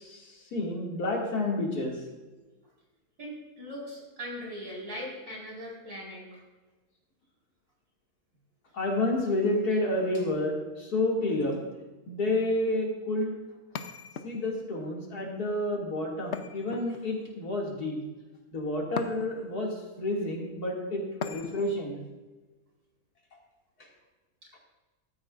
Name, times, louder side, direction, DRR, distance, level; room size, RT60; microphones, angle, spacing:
voice 1, 0.0-2.0 8.7-11.6 12.1-13.4 14.2-18.0 18.5-22.0, left 1 dB, 90° left, -1 dB, 2.9 m, -30 dB
voice 2, 3.2-6.4 24.4-24.5, equal, 90° right, -3 dB, 5.0 m, -40 dB
sound 1, 13.7-14.7 16.3-17.3 19.0-19.6 21.2-21.8, left 6 dB, 55° left, 0.9 m, -38 dB
15.0 x 13.0 x 2.5 m, 1.2 s
omnidirectional pair, 1.6 m